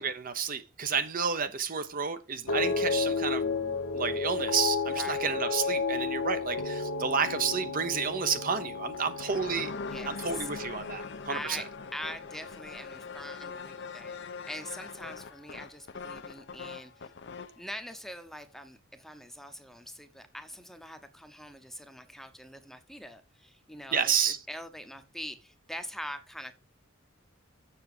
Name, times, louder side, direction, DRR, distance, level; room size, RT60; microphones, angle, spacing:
voice 1, 0.0-9.7 10.1-11.6 23.9-24.4, right 6 dB, 45° right, 0.8 m, -31 dB
sound 1, 2.5-12.8 13.1-13.7, left 4 dB, 85° left, 0.9 m, -33 dB
voice 2, 4.9-5.3 9.2-9.4 9.8-10.5 11.3-11.6 11.9-17.1 17.6-24.1 24.5-26.5, equal, ahead, 0.9 m, -43 dB
sound 2, 8.7-17.6, left 4 dB, 60° left, 0.8 m, -42 dB
7.1 x 7.1 x 4.9 m
head